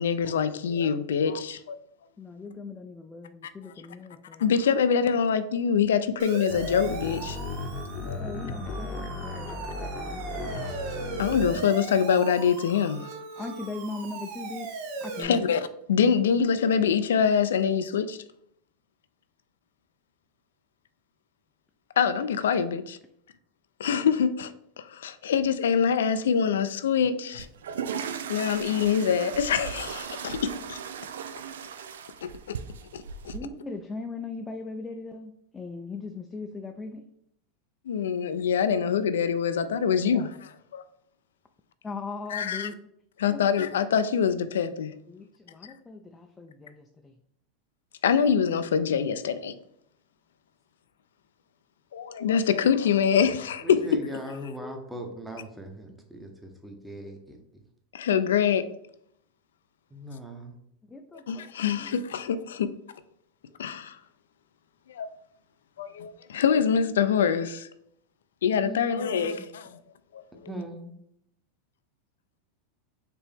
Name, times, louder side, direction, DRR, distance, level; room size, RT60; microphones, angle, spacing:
voice 1, 0.0-1.8 4.4-7.4 8.1-8.3 11.2-13.1 15.2-18.2 22.0-23.0 23.8-24.5 24.8-27.5 28.3-30.8 32.9-33.3 37.9-40.3 40.7-40.8 42.3-42.7 43.2-44.9 48.0-49.5 51.9-53.8 57.9-58.6 61.3-62.7 63.6-64.0 64.9-65.1 65.8-67.7 68.4-69.7 70.1-70.5, left 7 dB, 85° left, 0.3 m, -25 dB
voice 2, 2.2-4.5 8.2-10.5 13.4-14.7 15.0-15.4 33.3-37.1 40.0-40.3 41.8-42.8 43.3-43.5 45.1-47.1 54.3-54.9 60.9-62.0, left 3 dB, 15° left, 0.4 m, -39 dB
Siren, 6.2-15.2, right 4 dB, 60° right, 0.7 m, -38 dB
sound 1, 6.5-11.6, left 2 dB, 40° left, 0.7 m, -36 dB
sound 2, 27.4-33.4, right 7 dB, 85° right, 0.4 m, -37 dB
voice 3, 53.6-57.6 59.9-60.6 68.6-69.5 70.5-71.0, right 1 dB, 5° right, 0.9 m, -40 dB
4.5 x 2.9 x 3.4 m
hypercardioid pair, 115°, 0 cm